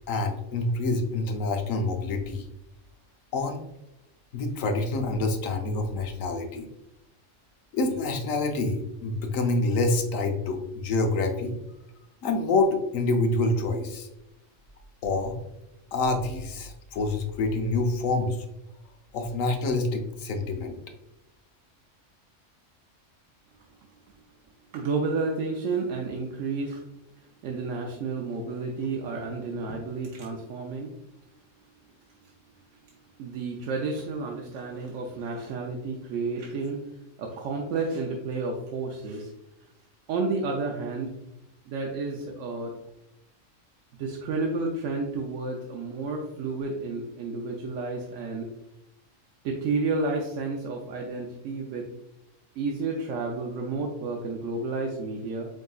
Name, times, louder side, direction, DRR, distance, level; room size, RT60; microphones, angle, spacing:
voice 1, 0.1-2.4 3.3-3.6 4.3-6.7 7.7-11.6 12.2-14.1 15.0-15.4 15.9-18.4 19.1-20.8, left 2 dB, 85° left, 4 dB, 1.1 m, -27 dB
voice 2, 24.7-26.8 27.4-30.9 33.2-36.8 37.2-39.3 40.1-41.1 41.7-42.7 44.0-48.5 49.4-51.8 52.6-55.5, right 3 dB, 80° right, 0 dB, 1.0 m, -31 dB
5.0 x 3.7 x 2.3 m, 0.88 s
omnidirectional pair, 1.3 m